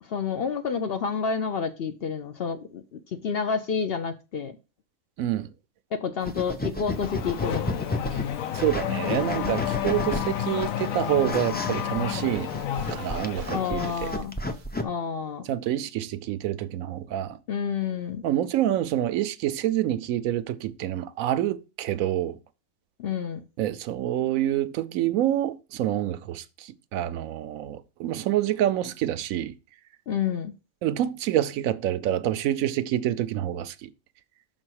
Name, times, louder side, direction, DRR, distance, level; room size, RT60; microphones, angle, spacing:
voice 1, 0.0-4.6 5.9-7.8 13.5-14.4 14.8-15.5 17.5-18.2 23.0-23.4 30.1-30.5, left 6 dB, 55° left, 0.7 m, -29 dB
voice 2, 5.2-5.5 8.1-8.2 8.5-14.1 15.4-17.4 18.2-22.4 23.6-29.5 30.8-33.9, right 12 dB, 80° right, 1.0 m, -27 dB
sound 1, 6.2-14.8, left 1 dB, 15° left, 0.4 m, -33 dB
Race car auto racing / Accelerating revving vroom, 6.9-14.1, left 10 dB, 75° left, 1.1 m, -31 dB
6.3 x 3.8 x 6.2 m
omnidirectional pair, 1.4 m